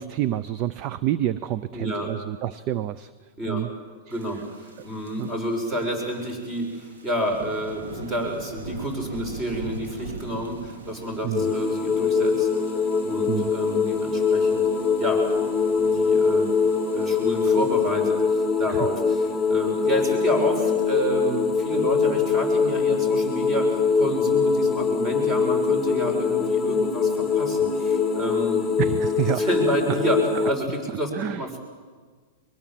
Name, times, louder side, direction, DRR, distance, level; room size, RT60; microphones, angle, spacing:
voice 1, 0.0-3.1 3.5-3.7 4.1-4.2 5.2-5.3 11.2-11.5 13.3-13.5 18.7-18.9 28.8-29.5 29.9-30.0 31.1-31.5, right 12 dB, 40° right, 15 dB, 0.6 m, -28 dB
voice 2, 1.7-2.1 3.4-3.7 4.1-14.7 15.0-15.2 15.8-16.5 16.9-28.6 29.4-31.1 31.4-31.6, equal, 25° right, 4 dB, 6.2 m, -29 dB
sound 1, 4.1-17.9, right 3 dB, 90° right, 2.8 m, -42 dB
sound 2, 11.3-30.5, left 5 dB, 5° left, 1.8 m, -23 dB
22.5 x 22.0 x 7.7 m, 1.5 s
hypercardioid pair, 140°, 0 cm